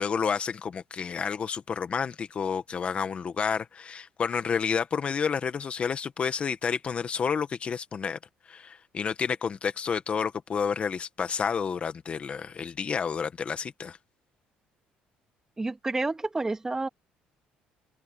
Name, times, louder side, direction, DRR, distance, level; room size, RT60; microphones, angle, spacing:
voice 1, 0.0-8.2 8.5-14.0, left 6 dB, 40° left, 1.5 m, -30 dB
voice 2, 15.6-16.9, right 2 dB, 15° right, 2.3 m, -29 dB
cardioid pair, 100°, 3 cm